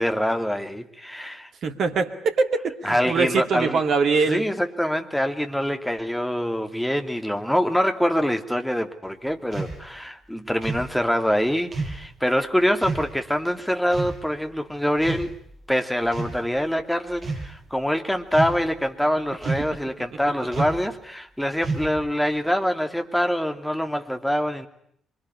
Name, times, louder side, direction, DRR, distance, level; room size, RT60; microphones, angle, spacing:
voice 1, 0.0-1.5 2.8-3.8 4.3-15.4 15.7-24.7, equal, 5° left, 5 dB, 2.7 m, -25 dB
voice 2, 1.6-4.5, right 4 dB, 55° right, 6 dB, 2.3 m, -23 dB
sound 1, 9.5-9.8 10.6-10.9 11.7-12.0 12.8-13.1 13.9-14.2 15.0-15.5 16.1-16.4 17.1-17.5 18.3-18.7 19.4-19.8 20.5-20.9 21.6-22.1, right 3 dB, 40° right, 7.3 m, -30 dB
25.0 x 24.0 x 9.9 m, 0.68 s
figure-of-eight pair, 40°, 0 cm